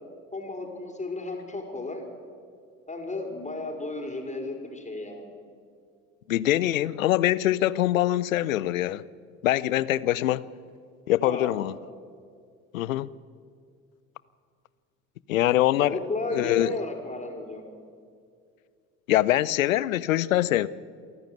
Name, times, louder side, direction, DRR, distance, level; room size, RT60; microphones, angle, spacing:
voice 1, 0.3-2.0 2.9-5.3 11.2-11.5 15.7-17.6, left 2 dB, 20° left, 2 dB, 5.0 m, -34 dB
voice 2, 6.3-9.0 9.4-10.5 11.1-11.7 12.7-13.1 15.3-16.0 16.3-16.8 19.1-20.7, left 14 dB, 85° left, 20 dB, 0.6 m, -23 dB
28.5 x 11.5 x 9.3 m, 2.2 s
hypercardioid pair, 60°, 39 cm